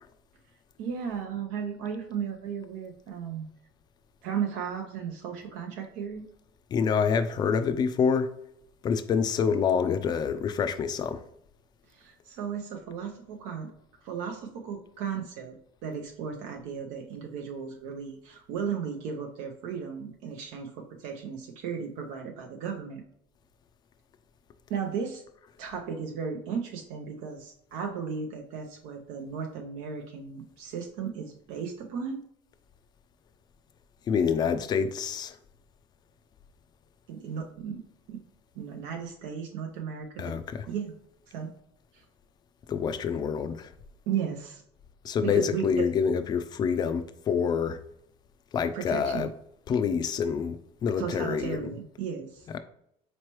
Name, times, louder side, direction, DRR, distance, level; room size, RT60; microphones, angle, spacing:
voice 1, 0.8-3.5 4.2-6.2 11.9-13.7 14.0-15.6 15.8-23.0 24.7-25.2 25.6-32.2 37.1-37.8 38.1-38.2 38.5-40.4 40.7-40.9 41.3-41.5 41.9-42.0 44.1-44.6 45.2-45.9 48.7-49.3 51.0-52.5, right 7 dB, 70° right, 0.6 m, -35 dB
voice 2, 6.7-8.3 8.8-11.2 34.1-35.4 40.2-40.7 42.7-43.7 45.0-47.8 48.5-49.3 49.7-51.6, left 6 dB, 30° left, 0.4 m, -27 dB
4.2 x 3.1 x 3.0 m
cardioid pair, 130°, 13 cm